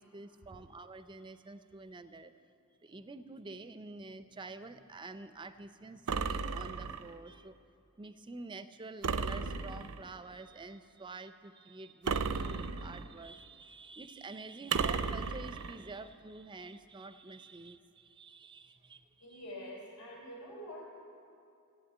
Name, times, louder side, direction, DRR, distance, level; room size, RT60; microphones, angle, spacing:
voice 1, 0.0-2.3 2.8-7.5 8.0-19.4, right 3 dB, 20° right, 11 dB, 0.5 m, -48 dB
sound 1, 6.1-7.1 9.0-10.1 12.1-13.2 14.7-15.8, right 5 dB, 80° right, 0.6 m, -34 dB
voice 2, 19.2-20.9, equal, 85° left, -3 dB, 3.3 m, -46 dB
14.5 x 8.5 x 8.5 m, 2.6 s
head